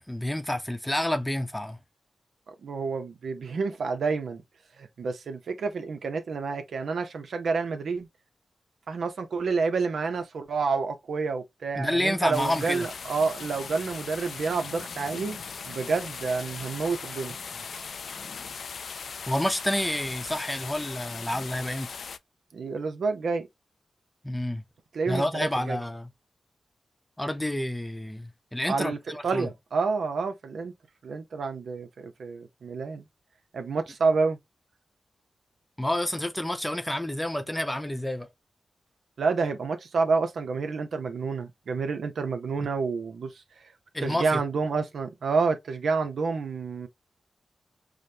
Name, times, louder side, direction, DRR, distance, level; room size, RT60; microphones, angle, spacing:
voice 1, 0.0-1.8 11.8-12.9 19.3-22.0 24.2-24.6 25.1-26.1 27.2-29.5 35.8-38.3 42.6-42.7 43.9-44.4, left 1 dB, 10° left, 0.7 m, -29 dB
voice 2, 2.5-4.4 4.8-8.1 8.9-15.4 15.7-17.6 22.5-23.5 24.9-25.8 28.7-30.7 31.0-33.1 33.5-34.4 39.2-43.3 44.0-46.9, right 4 dB, 80° right, 0.6 m, -29 dB
sound 1, 12.3-22.2, left 5 dB, 75° left, 0.3 m, -39 dB
4.9 x 2.1 x 2.7 m
cardioid pair, 60°, 0 cm